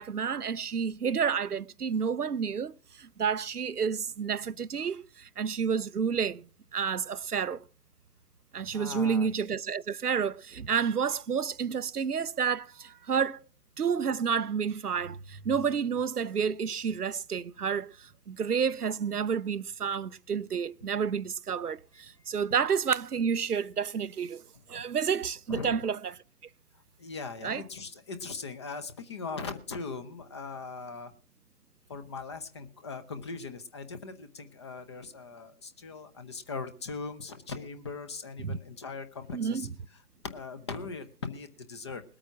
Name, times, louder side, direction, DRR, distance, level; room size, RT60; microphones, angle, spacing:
voice 1, 0.0-6.4 6.7-7.6 8.5-13.4 13.8-24.4 24.7-26.1 27.4-27.6 38.4-38.6 39.3-39.7, right 6 dB, 90° right, 0.7 m, -30 dB
voice 2, 8.7-9.3 24.7-24.8 25.5-25.8 27.0-31.1 31.9-39.7 40.2-42.0, left 4 dB, 20° left, 0.7 m, -40 dB
20.0 x 8.8 x 5.9 m
figure-of-eight pair, 145°, 44 cm